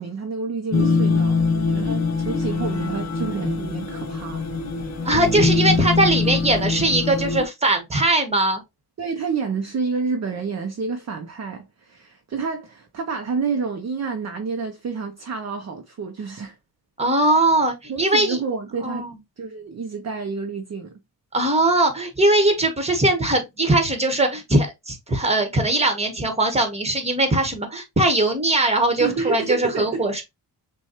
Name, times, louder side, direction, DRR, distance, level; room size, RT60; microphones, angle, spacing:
voice 1, 0.0-4.5 9.0-16.6 17.9-19.1 19.4-21.0 29.0-30.1, right 5 dB, 40° right, 0.6 m, -29 dB
sound 1, 0.7-7.4, left 4 dB, 40° left, 1.0 m, -23 dB
voice 2, 5.0-8.6 17.0-18.4 18.8-19.1 21.3-30.2, right 1 dB, 15° right, 1.2 m, -20 dB
6.2 x 2.3 x 2.9 m
wide cardioid pair, 110°, 43 cm